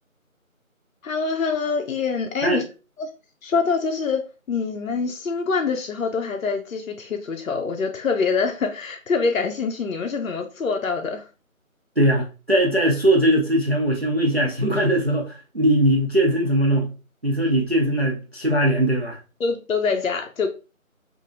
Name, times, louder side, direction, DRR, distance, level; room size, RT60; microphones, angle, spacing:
voice 1, 1.0-2.6 3.0-3.1 3.4-11.3 19.4-20.5, left 5 dB, 75° left, 0.5 m, -25 dB
voice 2, 12.0-16.9 17.2-19.2, right 1 dB, 50° right, 0.5 m, -20 dB
2.9 x 2.4 x 2.5 m
figure-of-eight pair, 175°, 42 cm